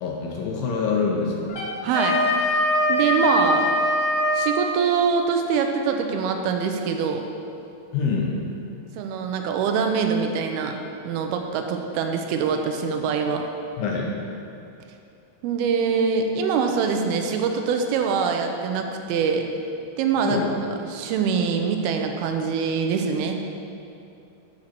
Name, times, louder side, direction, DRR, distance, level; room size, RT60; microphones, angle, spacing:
voice 1, 0.0-1.6 7.9-8.4 13.8-14.2 20.2-20.5, left 5 dB, 75° left, -1 dB, 2.5 m, -25 dB
Wind instrument woodwind instrument, 1.5-4.6, left 1 dB, 45° left, 2.4 m, -22 dB
voice 2, 1.8-2.2 2.9-3.7 4.3-7.2 9.0-10.8 11.1-13.5 15.4-19.5 20.0-20.4 20.9-23.4, right 6 dB, 85° right, 4 dB, 2.6 m, -24 dB
9.8 x 7.6 x 4.5 m, 2.7 s
omnidirectional pair, 4.4 m